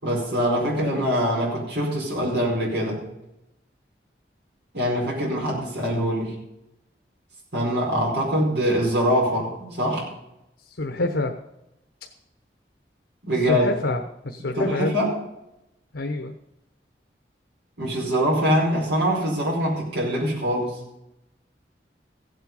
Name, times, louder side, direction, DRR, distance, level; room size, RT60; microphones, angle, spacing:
voice 1, 0.0-3.0 4.7-6.3 7.5-10.1 13.2-13.6 14.6-15.1 17.8-20.8, equal, 70° right, -4 dB, 4.9 m, -23 dB
voice 2, 10.6-11.4 12.0-12.1 13.4-15.0 15.9-16.3, left 2 dB, 90° left, 5 dB, 1.0 m, -27 dB
16.0 x 8.0 x 5.4 m, 0.87 s
head